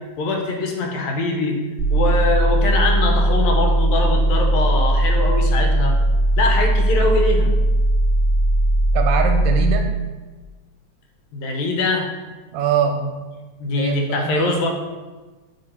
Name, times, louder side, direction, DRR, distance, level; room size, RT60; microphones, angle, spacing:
voice 1, 0.2-1.6 1.9-5.9 6.4-7.5 11.3-12.1 12.9-13.1 13.6-14.7, left 2 dB, 80° left, 2 dB, 2.1 m, -22 dB
sound 1, 1.8-9.8, right 1 dB, 25° left, 1.8 m, -18 dB
voice 2, 8.9-9.9 12.5-13.0 13.6-14.5, right 7 dB, 80° right, 4 dB, 1.8 m, -22 dB
6.7 x 3.8 x 4.2 m, 1.3 s
omnidirectional pair, 3.4 m